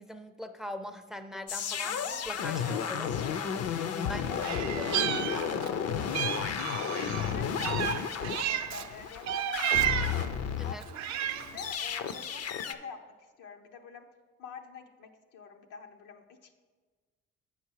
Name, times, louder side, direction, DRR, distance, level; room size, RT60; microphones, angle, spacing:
voice 1, 0.0-3.1 4.1-4.3 4.6-5.7 10.6-10.8, left 1 dB, ahead, 9 dB, 0.4 m, -42 dB
sound 1, 1.5-10.7 11.0-12.7, left 7 dB, 55° left, 0.5 m, -33 dB
voice 2, 3.8-5.9 6.9-10.2 10.6-14.1 14.4-16.5, left 5 dB, 85° left, 4 dB, 0.9 m, -46 dB
Meow, 4.4-5.8 6.1-8.9 9.3-10.3 10.8-11.6, right 11 dB, 65° right, 0.5 m, -32 dB
8.2 x 5.7 x 4.7 m, 1.4 s
cardioid pair, 90°, 30 cm